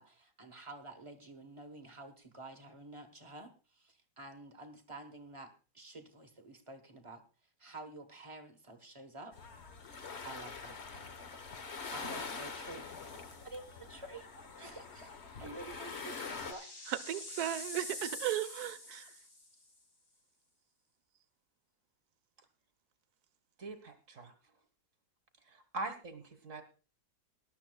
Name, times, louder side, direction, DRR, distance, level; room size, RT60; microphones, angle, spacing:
voice 1, 0.0-7.2 7.6-9.4 10.2-10.8 11.9-12.9 13.1-14.3 14.6-15.1 15.4-16.6, right 2 dB, 20° right, 1.0 m, -49 dB
sound 1, 9.3-16.5, left 4 dB, 45° left, 1.2 m, -45 dB
sound 2, 12.8-13.1 13.5-13.6 15.0-19.6, left 2 dB, 60° left, 3.6 m, -47 dB
voice 2, 16.9-19.2, right 12 dB, 65° right, 1.3 m, -36 dB
voice 3, 23.6-24.3 25.5-26.6, right 2 dB, 45° right, 1.5 m, -42 dB
19.5 x 12.0 x 2.3 m
omnidirectional pair, 1.9 m